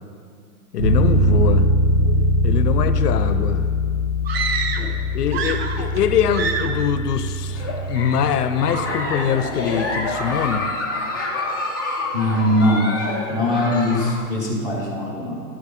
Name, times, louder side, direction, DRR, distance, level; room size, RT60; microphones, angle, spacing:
voice 1, 0.7-1.7 2.4-3.6 5.1-10.7, left 8 dB, 90° left, 11 dB, 0.8 m, -23 dB
sound 1, 0.8-10.5, equal, 25° right, 1.7 m, -22 dB
sound 2, 4.2-5.0 5.3-6.0 6.3-6.9, right 5 dB, 45° right, 0.6 m, -26 dB
Giggle, 7.5-14.2, left 2 dB, 15° left, 0.4 m, -27 dB
voice 2, 12.1-12.9 13.3-15.4, left 1 dB, 10° right, -4 dB, 0.8 m, -21 dB
12.0 x 7.7 x 3.8 m, 2.2 s
hypercardioid pair, 175°, 45 cm